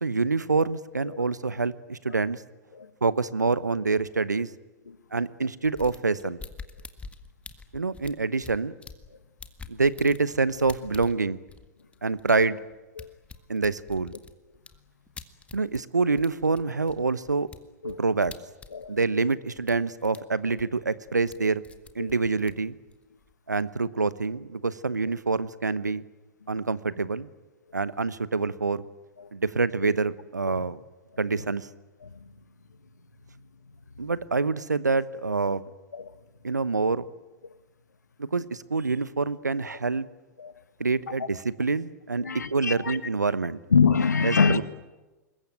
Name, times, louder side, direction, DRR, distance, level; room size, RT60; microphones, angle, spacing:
voice 1, 0.0-2.4 3.0-4.5 5.1-6.4 7.7-8.7 9.7-11.4 12.0-12.6 13.5-14.1 15.5-17.5 17.8-18.3 18.9-21.6 21.9-22.7 23.5-26.0 26.5-27.3 27.7-28.8 29.3-30.8 31.2-31.7 34.0-35.6 36.4-37.0 38.2-40.1 40.8-43.6 44.2-44.6, right 4 dB, 85° right, 1.0 m, -26 dB
sound 1, 5.6-9.1 9.4-15.9 16.2-19.3 19.6-20.2 20.4-21.4 21.6-23.3, left 4 dB, 15° left, 1.8 m, -46 dB
voice 2, 42.2-43.0 43.7-44.6, left 5 dB, 80° left, 1.6 m, -25 dB
26.5 x 22.0 x 9.3 m
figure-of-eight pair, 100°, 9 cm